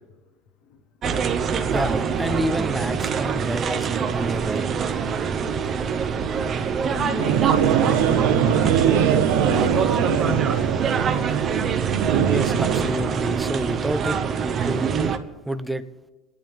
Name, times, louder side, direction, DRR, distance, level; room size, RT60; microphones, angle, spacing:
sound 1, 1.0-15.2, right 6 dB, 30° right, 0.9 m, -25 dB
voice 1, 1.6-4.7 12.2-14.9 15.5-15.8, right 1 dB, 5° right, 0.6 m, -29 dB
voice 2, 6.9-10.5, left 6 dB, 60° left, 1.1 m, -33 dB
sound 2, 7.2-12.8, right 9 dB, 85° right, 1.0 m, -22 dB
29.0 x 10.5 x 3.6 m
cardioid pair, 160°, 0 cm